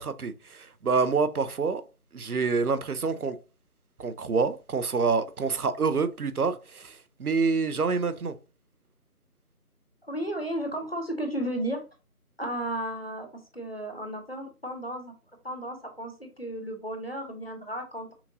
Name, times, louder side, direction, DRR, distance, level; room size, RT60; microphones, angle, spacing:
voice 1, 0.0-1.8 2.1-3.4 4.0-8.4, right 4 dB, 70° right, 0.6 m, -27 dB
voice 2, 10.0-11.8 12.4-15.1 15.4-18.1, right 1 dB, 40° left, 0.8 m, -34 dB
5.7 x 2.6 x 2.6 m
figure-of-eight pair, 170°, 46 cm